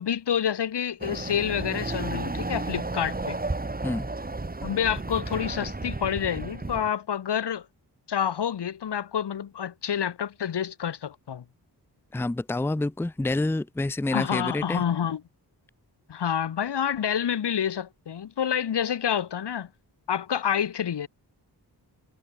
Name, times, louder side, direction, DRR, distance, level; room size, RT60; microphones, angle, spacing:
voice 1, 0.0-3.4 4.6-7.7 8.1-11.4 14.1-15.2 16.1-19.7 20.1-21.1, left 8 dB, 80° left, 1.2 m, -28 dB
Chatter / Car passing by / Motorcycle, 1.0-6.9, right 2 dB, 20° right, 2.7 m, -33 dB
voice 2, 12.1-14.8, left 2 dB, 5° left, 0.5 m, -28 dB
wide cardioid pair, 120°, 41 cm